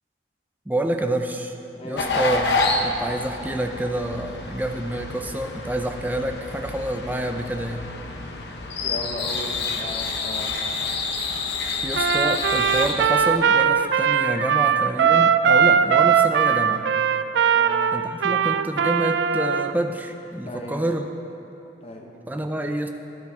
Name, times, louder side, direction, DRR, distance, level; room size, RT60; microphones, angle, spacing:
voice 1, 0.7-1.5 1.8-2.6 2.8-7.9 11.8-16.9 17.9-21.0 22.3-22.9, right 1 dB, 10° right, 5 dB, 0.5 m, -28 dB
voice 2, 1.8-2.3 8.8-10.6 17.5-17.9 20.5-20.8 21.8-22.2, left 1 dB, 35° left, 0 dB, 1.1 m, -36 dB
sound 1, 2.0-13.1, left 3 dB, 65° left, 0.9 m, -28 dB
Trumpet, 11.9-19.7, right 7 dB, 75° right, 0.3 m, -20 dB
13.5 x 10.0 x 3.6 m, 2.9 s
head